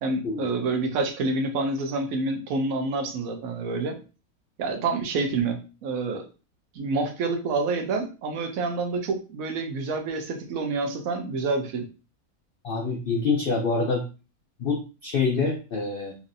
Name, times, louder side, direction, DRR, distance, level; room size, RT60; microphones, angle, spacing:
voice 1, 0.0-4.0 4.6-6.3 6.7-11.9, right 3 dB, 75° right, 5 dB, 1.1 m, -28 dB
voice 2, 12.6-14.1 14.6-16.1, left 4 dB, 70° left, 0 dB, 0.5 m, -26 dB
3.1 x 2.7 x 2.5 m, 0.33 s
omnidirectional pair, 1.5 m